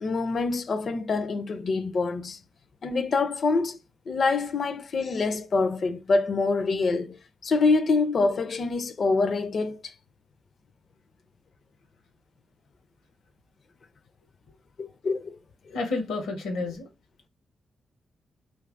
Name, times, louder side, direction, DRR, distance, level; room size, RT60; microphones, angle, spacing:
voice 1, 0.0-2.4 2.8-3.8 4.1-7.2 7.4-9.9 14.8-15.4, left 3 dB, 60° left, 0.4 m, -25 dB
voice 2, 15.7-16.9, left 3 dB, 85° left, 0.7 m, -30 dB
2.8 x 2.3 x 2.5 m
supercardioid pair, 50°, 0 cm